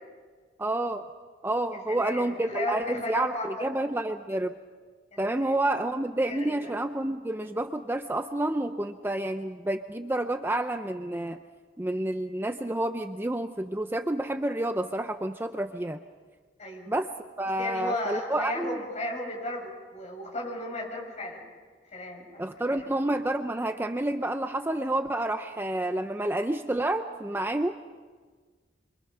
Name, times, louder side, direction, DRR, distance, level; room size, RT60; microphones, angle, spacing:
voice 1, 0.6-1.0 1.4-4.6 5.2-11.4 11.8-16.0 16.9-17.1 17.4-18.8 22.4-27.7, right 1 dB, 10° right, 8 dB, 0.6 m, -29 dB
voice 2, 1.7-3.7 5.1-5.6 6.2-6.7 16.6-16.9 17.6-21.5 21.9-22.7, left 1 dB, 40° left, 0 dB, 7.0 m, -35 dB
27.5 x 25.0 x 5.8 m, 1.5 s
head